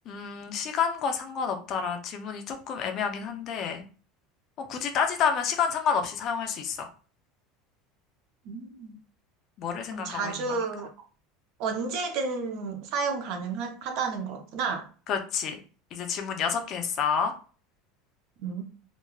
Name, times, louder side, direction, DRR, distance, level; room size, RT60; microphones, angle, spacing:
voice 1, 0.1-3.8 4.7-6.9 9.6-10.3 15.1-15.6 15.9-17.3, left 6 dB, 40° left, 0.5 m, -29 dB
voice 2, 8.5-9.0 9.9-10.9 11.6-14.9 18.4-18.6, right 4 dB, 55° right, 0.6 m, -31 dB
3.0 x 2.2 x 2.3 m
supercardioid pair, 145°, 0 cm